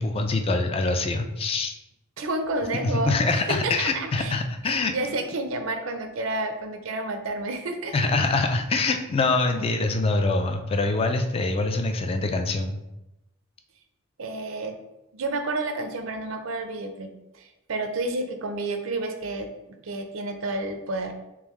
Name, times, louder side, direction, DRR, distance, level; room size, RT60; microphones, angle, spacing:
voice 1, 0.0-1.7 2.8-5.0 7.9-12.8, left 3 dB, 25° left, 5 dB, 0.3 m, -24 dB
voice 2, 2.2-4.3 4.6-7.9 14.2-14.8 15.1-19.5 19.8-21.1, right 2 dB, 75° right, 7 dB, 0.5 m, -30 dB
3.8 x 3.4 x 3.0 m, 0.92 s
head